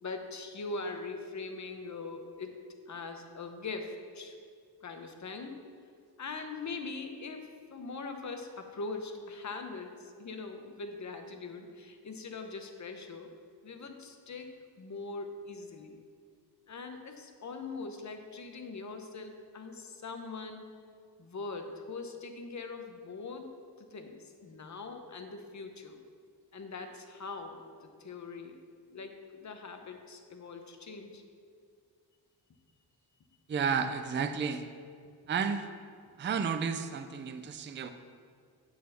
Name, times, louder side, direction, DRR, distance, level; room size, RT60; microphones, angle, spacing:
voice 1, 0.0-2.6 2.9-4.4 4.8-5.6 6.2-13.3 13.6-14.5 14.8-16.0 16.7-20.8 21.2-23.5 23.8-26.0 26.5-28.6 28.9-31.2, left 3 dB, 45° left, 5 dB, 0.8 m, -42 dB
voice 2, 33.5-34.6 35.3-35.6 36.2-37.9, right 6 dB, 30° right, 9 dB, 0.4 m, -32 dB
9.3 x 4.2 x 6.8 m, 2.2 s
wide cardioid pair, 150°, 41 cm